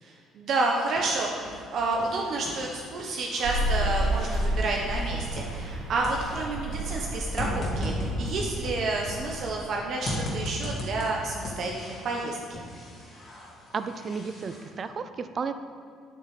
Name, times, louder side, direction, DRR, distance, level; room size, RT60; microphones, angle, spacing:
voice 1, 0.0-12.6, right 3 dB, 45° right, -1 dB, 0.9 m, -30 dB
sound 1, 0.5-1.7 1.9-5.8 6.0-9.6 10.0-12.2 12.5-14.7, left 1 dB, 30° left, 2.4 m, -36 dB
sound 2, 3.4-9.5, right 1 dB, 80° right, 2.5 m, -31 dB
voice 2, 13.7-15.5, right 5 dB, 30° right, 10 dB, 0.4 m, -33 dB
10.0 x 8.1 x 4.9 m, 2.1 s
cardioid pair, 170°, 0 cm